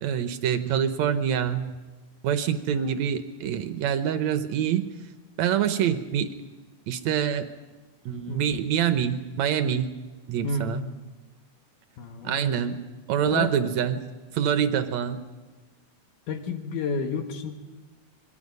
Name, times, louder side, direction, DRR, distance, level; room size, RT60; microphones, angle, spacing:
voice 1, 0.0-1.7 2.2-4.9 5.4-6.3 6.9-7.5 8.1-10.0 10.3-10.8 12.2-12.8 13.1-14.1 14.3-15.2, right 9 dB, 70° right, 10 dB, 2.0 m, -25 dB
voice 2, 2.7-3.0 8.3-8.5 10.4-10.8 12.0-12.5 13.3-13.6 16.3-17.5, left 3 dB, 80° left, 5 dB, 3.2 m, -31 dB
26.0 x 21.0 x 5.3 m, 1.3 s
omnidirectional pair, 3.6 m